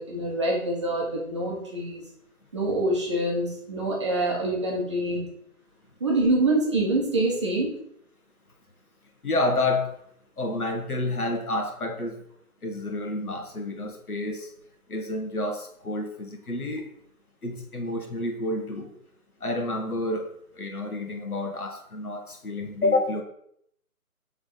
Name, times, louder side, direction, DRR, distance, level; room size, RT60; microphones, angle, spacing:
voice 1, 0.0-2.0 2.5-5.3 6.0-7.8, right 2 dB, 20° right, -3 dB, 0.9 m, -25 dB
voice 2, 9.2-9.9 10.4-12.1 12.6-14.5 14.9-16.8 17.4-18.9 19.4-23.2, left 2 dB, 75° left, 3 dB, 1.4 m, -29 dB
7.1 x 3.5 x 3.9 m, 0.70 s
figure-of-eight pair, 150°, 45 cm